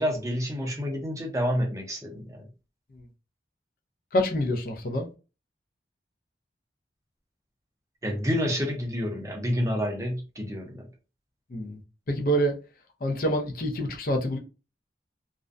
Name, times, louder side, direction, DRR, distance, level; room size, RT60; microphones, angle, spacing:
voice 1, 0.0-2.5 8.0-10.9, equal, 15° right, 0.5 m, -29 dB
voice 2, 4.1-5.1 11.5-11.8 12.1-12.6 13.0-14.4, equal, 50° left, 0.5 m, -26 dB
2.4 x 2.1 x 2.5 m
head